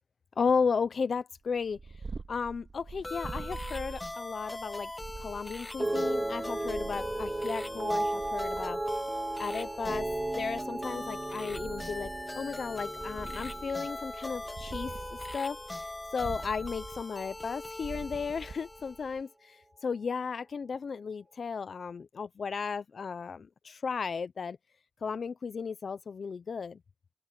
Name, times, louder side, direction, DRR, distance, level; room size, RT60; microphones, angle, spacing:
voice 1, 0.4-1.8 2.3-4.9 5.2-9.0 9.4-10.1 10.3-14.9 15.3-24.6 25.0-26.8, left 5 dB, 60° left, 0.5 m, -34 dB
Purr, 1.5-19.2, right 4 dB, 45° right, 2.8 m, -46 dB
sound 1, 3.0-19.2, left 2 dB, 20° left, 1.8 m, -41 dB
sound 2, 5.8-16.2 16.4-17.0, right 2 dB, 20° right, 1.8 m, -36 dB
wide cardioid pair, 140°, 0 cm